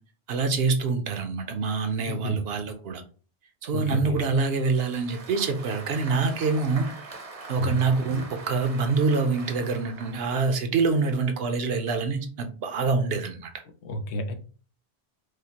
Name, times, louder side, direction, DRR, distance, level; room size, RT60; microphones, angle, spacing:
voice 1, 0.3-3.0 3.6-7.0 7.5-13.5, right 4 dB, 70° right, 7 dB, 0.8 m, -26 dB
voice 2, 2.1-2.4 3.7-4.2 7.6-7.8 13.8-14.3, left 1 dB, 90° left, 5 dB, 1.0 m, -30 dB
Applause, 4.5-10.6, right 3 dB, 40° right, 0.6 m, -43 dB
4.9 x 2.0 x 2.8 m, 0.39 s
omnidirectional pair, 1.1 m